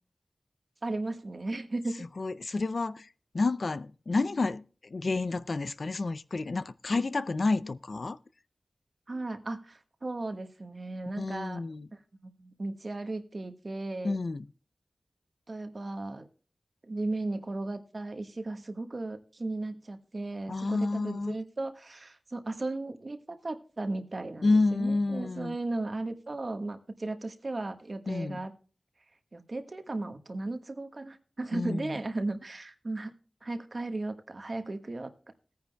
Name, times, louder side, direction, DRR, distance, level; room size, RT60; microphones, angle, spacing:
voice 1, 0.8-1.9 9.1-11.6 12.2-14.2 15.5-16.3 16.8-28.5 29.3-33.1 33.4-35.1, right 2 dB, 55° right, 1.4 m, -36 dB
voice 2, 2.2-3.1 3.3-8.2 11.2-11.9 14.0-14.5 20.5-21.4 24.4-25.6 28.1-28.4 31.5-32.0, left 3 dB, 70° left, 0.4 m, -29 dB
19.0 x 9.6 x 2.2 m
wide cardioid pair, 50°, 0 cm